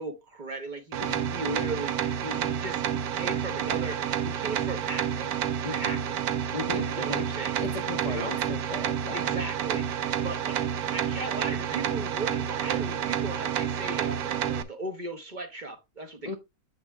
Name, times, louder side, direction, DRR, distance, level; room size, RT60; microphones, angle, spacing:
voice 1, 0.0-5.4 5.7-6.2 6.8-7.5 8.1-8.5 9.1-16.4, right 2 dB, 35° right, 0.9 m, -37 dB
sound 1, 0.9-14.6, right 9 dB, 70° right, 1.2 m, -29 dB
voice 2, 5.6-6.0 6.5-7.3 7.6-9.3 16.2-16.4, left 4 dB, 85° left, 0.3 m, -36 dB
8.0 x 6.8 x 2.3 m
omnidirectional pair, 1.7 m